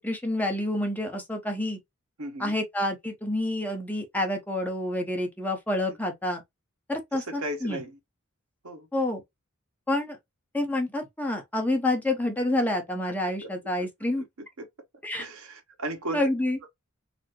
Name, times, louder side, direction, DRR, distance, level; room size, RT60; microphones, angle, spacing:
voice 1, 0.0-1.8 2.4-6.4 6.9-7.8 8.9-9.2 9.9-10.2 10.5-14.2 15.0-15.3 16.1-16.6, left 1 dB, 10° left, 0.8 m, -28 dB
voice 2, 2.2-2.5 7.1-8.0 8.6-8.9 13.2-13.5 13.8-13.9 14.6-14.7 15.2-16.2, right 1 dB, 90° right, 1.2 m, -36 dB
4.1 x 2.0 x 3.0 m
head